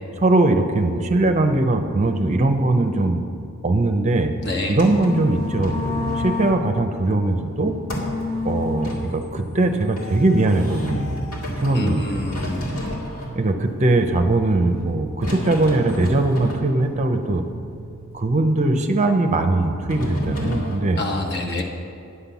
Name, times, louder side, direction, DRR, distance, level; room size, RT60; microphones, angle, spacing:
voice 1, 0.2-3.2 3.6-4.3 4.7-7.8 8.4-11.2 11.6-12.3 13.3-17.4 18.1-21.0, right 2 dB, 30° right, 6 dB, 0.6 m, -20 dB
sound 1, 4.4-20.8, left 1 dB, 75° left, 2.2 m, -31 dB
voice 2, 4.4-4.7 11.7-12.6 21.0-21.6, left 2 dB, 50° left, 1 dB, 1.2 m, -27 dB
9.9 x 5.8 x 7.0 m, 2.5 s
head